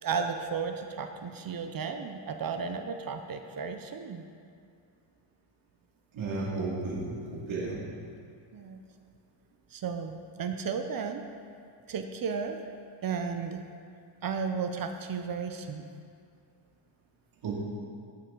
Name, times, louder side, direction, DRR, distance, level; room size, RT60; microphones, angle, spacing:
voice 1, 0.0-4.2 8.5-8.8 9.7-11.2 11.9-12.6 13.0-13.6 14.2-15.8, right 6 dB, 45° right, 6 dB, 0.6 m, -34 dB
voice 2, 6.1-7.2 7.5-7.8 17.4-17.6, right 3 dB, 65° right, -5 dB, 2.6 m, -33 dB
13.5 x 7.0 x 3.8 m, 2.4 s
cardioid pair, 140°, 50 cm